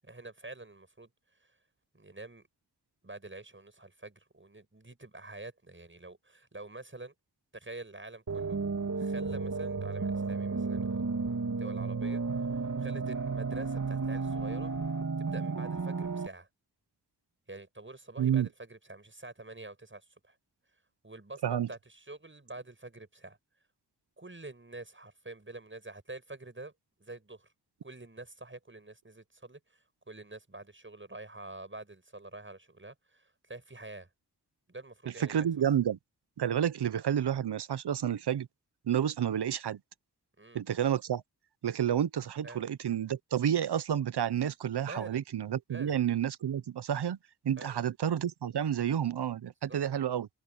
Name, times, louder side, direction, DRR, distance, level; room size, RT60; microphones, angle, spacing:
voice 1, 0.0-1.1 1.4-1.5 1.9-2.5 3.0-7.1 7.5-8.6 9.0-11.1 11.6-14.7 15.2-16.5 17.5-20.4 21.0-23.4 24.2-26.7 27.0-27.5 27.8-34.1 34.7-35.5 40.4-40.6 42.4-42.6 44.9-45.2 45.7-46.0 47.6-47.8 49.7-49.8, right 2 dB, 30° right, 7.6 m, -47 dB
sound 1, 8.3-16.3, right 4 dB, 50° right, 3.0 m, -33 dB
voice 2, 18.2-18.5 21.4-21.7 35.2-36.0 36.4-38.5 38.9-39.8 40.5-41.2 41.6-47.2 47.4-50.3, right 9 dB, 80° right, 0.8 m, -30 dB
cardioid pair, 55°, 39 cm